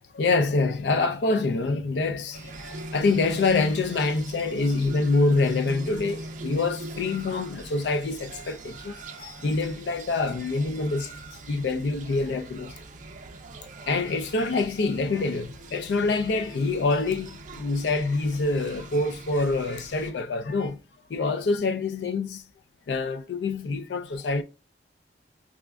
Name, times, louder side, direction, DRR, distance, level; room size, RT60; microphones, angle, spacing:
voice 1, 0.1-12.8 13.9-20.8 21.1-22.4 22.9-24.4, left 3 dB, 65° left, 0.4 m, -26 dB
sound 1, 2.3-20.1, right 2 dB, 45° right, 0.4 m, -41 dB
5.0 x 2.3 x 2.2 m
head